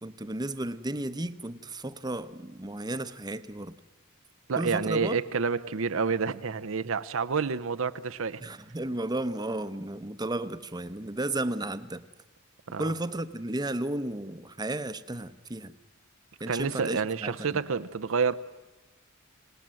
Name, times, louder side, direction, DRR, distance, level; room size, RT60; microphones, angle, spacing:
voice 1, 0.0-3.7 4.6-5.2 8.4-12.0 12.8-15.7 16.4-17.4, right 1 dB, 20° right, 0.9 m, -33 dB
voice 2, 4.5-8.4 12.7-12.9 16.5-18.3, right 5 dB, 70° right, 0.7 m, -29 dB
27.0 x 18.5 x 7.7 m
head